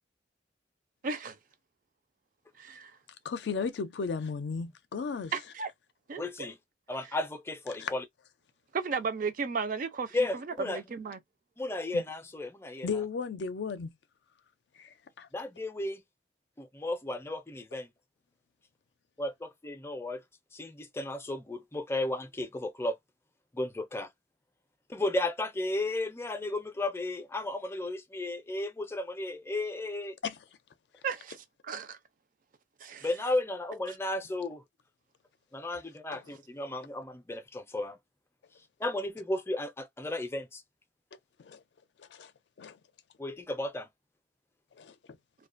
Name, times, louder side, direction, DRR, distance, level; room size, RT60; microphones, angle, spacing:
voice 1, 1.0-1.4 2.6-3.0 5.3-5.7 6.1-6.2 8.7-11.2 31.0-31.4 31.6-32.0 32.8-33.1, right 5 dB, 50° right, 0.4 m, -34 dB
voice 2, 3.2-5.3 7.8-7.9 11.9-12.0 12.8-13.9 14.8-15.3 30.2-30.3 41.4-41.6 42.0-42.3 42.6-42.8 44.8-44.9, left 5 dB, 70° left, 0.4 m, -35 dB
voice 3, 6.2-6.6 6.9-8.0 10.1-10.8 11.6-13.0 15.3-16.0 16.6-17.9 19.2-20.2 20.5-23.0 23.5-24.1 24.9-30.2 33.0-34.6 35.5-38.0 38.8-40.6 43.2-43.9, left 2 dB, 15° left, 0.4 m, -34 dB
2.4 x 2.2 x 2.4 m
head